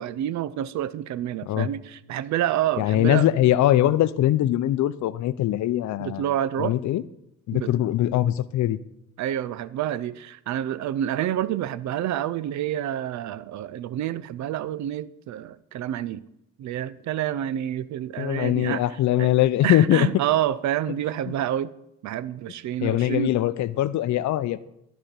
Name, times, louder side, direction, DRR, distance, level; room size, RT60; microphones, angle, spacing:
voice 1, 0.0-3.3 6.0-6.7 7.5-7.7 9.2-16.2 16.6-19.3 19.6-21.7 22.0-23.3, right 11 dB, 70° right, 0.5 m, -28 dB
voice 2, 2.8-6.2 6.6-7.0 7.5-8.8 18.2-20.1 22.8-24.7, left 13 dB, 70° left, 0.5 m, -22 dB
12.5 x 4.4 x 5.2 m
cardioid pair, 90°, 30 cm